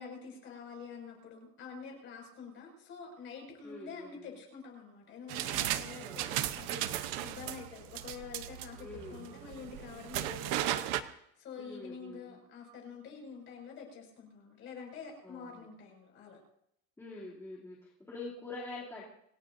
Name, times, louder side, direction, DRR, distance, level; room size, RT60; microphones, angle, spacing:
voice 1, 0.0-16.4, left 5 dB, 30° left, 1 dB, 6.1 m, -47 dB
voice 2, 3.6-4.3 6.0-6.5 8.8-9.3 11.6-12.4 15.2-15.7 17.0-19.1, left 3 dB, 5° left, -7 dB, 2.9 m, -46 dB
sound 1, 5.3-11.0, right 12 dB, 40° right, 0.9 m, -36 dB
27.5 x 17.0 x 2.7 m, 0.74 s
supercardioid pair, 180°, 42 cm